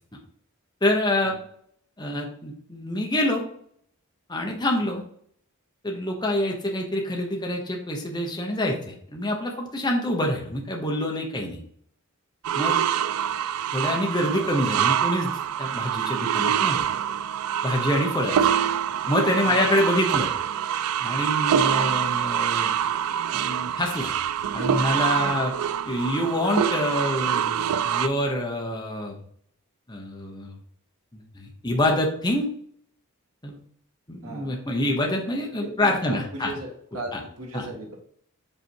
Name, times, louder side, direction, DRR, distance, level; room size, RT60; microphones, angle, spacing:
voice 1, 0.8-1.4 2.0-3.4 4.3-5.0 5.8-11.6 12.5-12.8 13.7-15.3 15.6-16.8 17.6-18.4 19.1-20.3 21.0-22.8 23.3-24.1 24.5-25.5 25.8-29.1 29.9-30.5 31.1-32.5 33.4-33.6 34.1-36.5 37.1-37.2 37.5-37.6, left 1 dB, 20° left, 0 dB, 1.0 m, -26 dB
sound 1, 12.4-28.1, right 9 dB, 90° right, 0.4 m, -25 dB
voice 2, 34.2-34.6 35.6-38.0, right 1 dB, 70° right, -1 dB, 2.1 m, -37 dB
5.5 x 4.4 x 4.6 m, 0.63 s
head